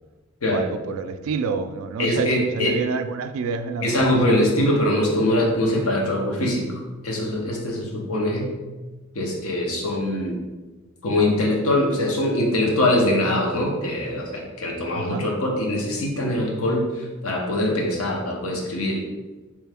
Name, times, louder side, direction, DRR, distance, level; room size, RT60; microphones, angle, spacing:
voice 1, 0.5-4.0 14.9-15.3, right 5 dB, 80° right, 9 dB, 0.3 m, -28 dB
voice 2, 2.0-2.8 3.8-8.5 9.1-10.4 11.0-19.0, left 1 dB, 90° left, -1 dB, 0.8 m, -23 dB
3.3 x 3.1 x 3.5 m, 1.2 s
head